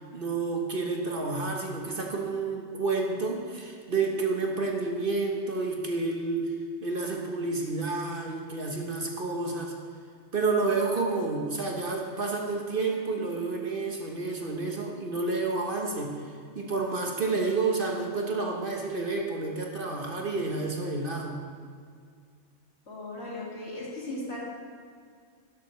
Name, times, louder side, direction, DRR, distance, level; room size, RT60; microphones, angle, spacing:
voice 1, 0.1-6.5 6.8-9.7 10.3-16.2 16.5-21.4, right 3 dB, 50° right, 0 dB, 1.3 m, -30 dB
voice 2, 22.9-24.4, left 1 dB, 60° left, -5 dB, 2.7 m, -37 dB
12.0 x 11.0 x 3.2 m, 2.1 s
omnidirectional pair, 1.3 m